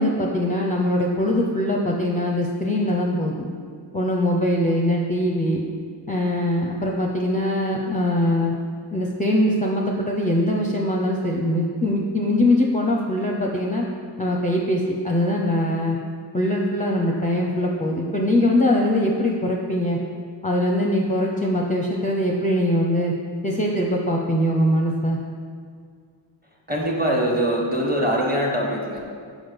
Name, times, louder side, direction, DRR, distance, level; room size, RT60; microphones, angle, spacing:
voice 1, 0.0-3.5 3.9-5.6 6.1-8.5 8.9-13.8 14.2-16.0 16.3-20.0 20.4-23.1 23.4-25.2, left 1 dB, 15° left, -1 dB, 0.6 m, -22 dB
voice 2, 26.7-29.1, equal, 20° right, -2 dB, 1.4 m, -23 dB
5.6 x 4.9 x 5.2 m, 2.1 s
wide cardioid pair, 45°, 47 cm